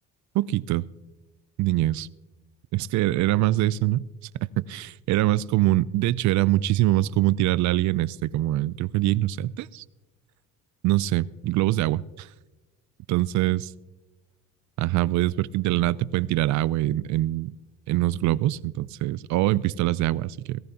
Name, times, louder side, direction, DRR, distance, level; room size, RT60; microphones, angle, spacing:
voice 1, 0.3-0.8 1.6-2.1 2.7-4.1 4.6-9.8 10.8-12.3 13.1-13.7 14.8-17.5 17.9-20.6, right 15 dB, 65° right, 20 dB, 0.4 m, -24 dB
17.5 x 15.0 x 2.9 m, 1.1 s
cardioid pair, 115°, 31 cm